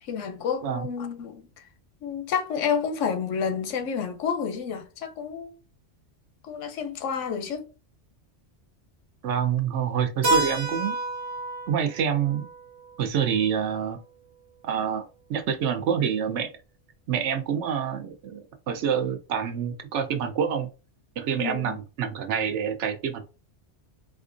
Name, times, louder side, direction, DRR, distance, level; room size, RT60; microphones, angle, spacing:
voice 1, 0.0-1.5 2.0-5.5 6.4-7.7 21.4-21.8, left 6 dB, 90° left, 1.0 m, -29 dB
voice 2, 9.2-11.0 11.7-12.5 13.0-14.0 14.6-15.0 15.3-16.5 17.1-18.4 18.7-20.7 21.2-23.2, right 8 dB, 75° right, 0.9 m, -27 dB
Keyboard (musical), 10.2-14.7, right 2 dB, 35° right, 0.5 m, -31 dB
4.3 x 2.4 x 2.5 m
omnidirectional pair, 1.2 m